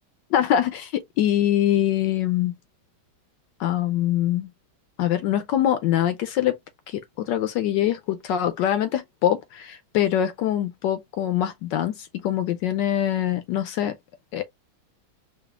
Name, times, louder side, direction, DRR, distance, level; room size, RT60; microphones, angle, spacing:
voice 1, 0.3-2.6 3.6-4.5 5.0-6.6 6.9-14.0 14.3-14.4, left 11 dB, 75° left, 1.0 m, -24 dB
5.0 x 2.4 x 2.3 m
omnidirectional pair, 2.3 m